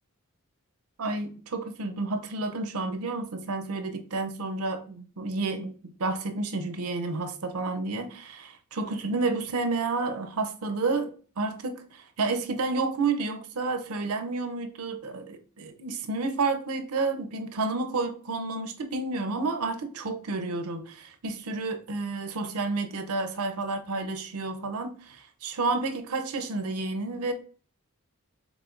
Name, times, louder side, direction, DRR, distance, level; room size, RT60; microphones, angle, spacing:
voice 1, 1.0-27.3, right 3 dB, 75° right, 0.6 m, -30 dB
4.9 x 4.0 x 2.5 m
head